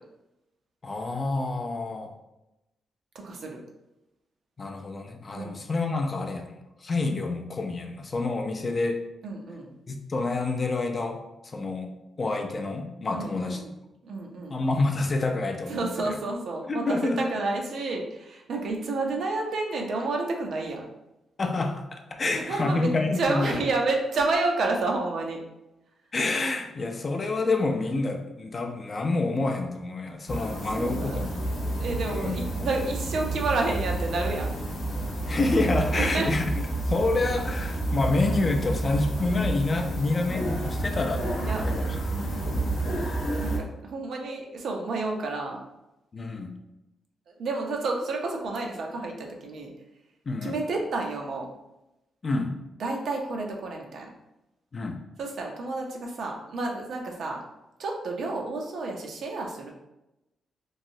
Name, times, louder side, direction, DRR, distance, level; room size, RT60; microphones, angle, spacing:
voice 1, 0.8-2.1 4.6-9.0 9.9-11.9 12.2-13.6 14.5-16.1 16.7-17.3 21.4-23.6 26.1-31.5 32.0-32.4 35.2-36.5 36.8-41.3 41.6-42.0 42.2-42.5 46.1-46.5 50.3-50.5 52.2-52.5 54.7-55.0, left 3 dB, 35° left, 4 dB, 0.4 m, -28 dB
voice 2, 3.2-3.6 5.3-5.6 9.2-9.7 13.1-13.7 14.0-14.6 15.7-20.9 22.3-22.9 23.2-25.4 30.8-31.3 31.8-34.5 35.9-36.3 41.4-41.6 42.1-42.8 43.4-45.6 47.4-49.7 50.4-51.5 52.8-54.1 55.2-57.4 57.8-59.7, right 3 dB, 65° right, 1 dB, 0.5 m, -30 dB
sound 1, 30.3-43.6, right 2 dB, 90° left, 0.8 m, -30 dB
3.1 x 2.6 x 2.7 m, 0.94 s
cardioid pair, 110°, 0 cm